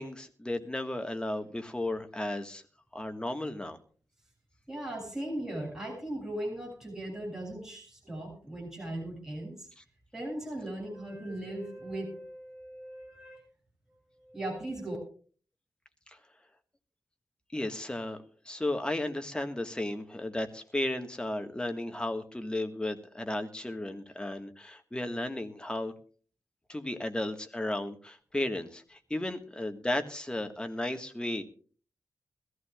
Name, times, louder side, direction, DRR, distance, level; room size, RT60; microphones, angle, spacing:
voice 1, 0.0-2.6 2.9-3.8 16.1-16.2 17.5-18.2 18.4-25.9 26.7-31.4, left 1 dB, 15° left, 6 dB, 1.6 m, -34 dB
voice 2, 4.7-9.7 10.1-13.4 14.2-15.0, right 1 dB, 5° right, -1 dB, 7.7 m, -38 dB
21.5 x 14.5 x 2.4 m, 0.41 s
wide cardioid pair, 110°, 6 cm